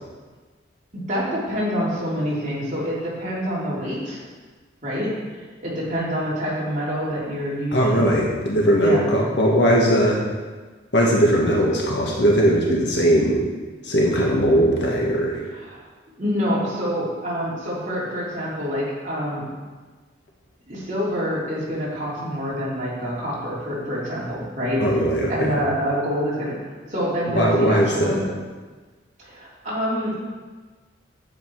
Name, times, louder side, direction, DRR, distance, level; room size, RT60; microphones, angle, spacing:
voice 1, 0.9-4.2 4.8-8.1 8.8-9.0 15.5-15.8 16.2-19.4 20.7-24.8 25.3-28.2 29.2-30.2, equal, 40° right, -7 dB, 3.3 m, -26 dB
voice 2, 7.7-10.2 10.9-13.4 13.8-15.4 24.8-25.5 27.3-28.2, equal, 65° left, -3 dB, 1.7 m, -19 dB
10.5 x 8.1 x 4.7 m, 1.4 s
head